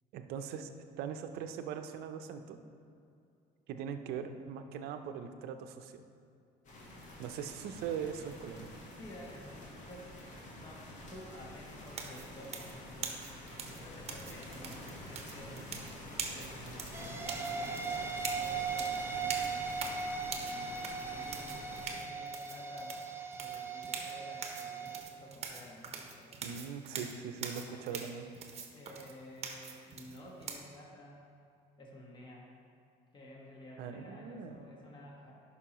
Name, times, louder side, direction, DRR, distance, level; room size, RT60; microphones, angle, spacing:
voice 1, 0.1-0.7 1.0-2.6 3.7-6.0 7.2-8.7 26.4-28.3 33.8-34.7, right 7 dB, 75° right, 8 dB, 0.6 m, -41 dB
sound 1, 6.6-21.9, left 1 dB, 50° left, 1.5 m, -48 dB
voice 2, 8.9-10.1 10.6-13.2 13.7-15.6 16.3-19.7 20.3-23.0 23.4-26.3 27.7-28.2 28.7-31.2 31.8-32.5 33.1-35.3, left 1 dB, 30° left, -3 dB, 1.4 m, -52 dB
sound 2, 11.9-30.6, right 5 dB, 40° right, 0.9 m, -43 dB
sound 3, 16.9-25.0, right 5 dB, 15° right, 0.5 m, -38 dB
11.0 x 5.5 x 3.0 m, 2.4 s
cardioid pair, 105°, 16 cm